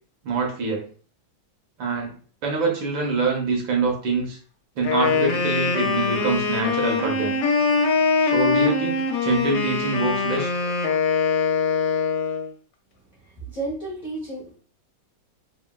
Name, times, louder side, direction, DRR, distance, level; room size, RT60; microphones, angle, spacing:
voice 1, 0.2-0.9 1.8-2.1 2.4-4.4 4.8-7.4 8.2-10.7, right 3 dB, 75° right, 1 dB, 1.5 m, -25 dB
Wind instrument woodwind instrument, 4.8-12.5, left 4 dB, 75° left, 1.3 m, -23 dB
voice 2, 13.2-14.6, right 2 dB, 40° left, -6 dB, 0.7 m, -32 dB
3.8 x 2.0 x 2.2 m, 0.43 s
omnidirectional pair, 2.1 m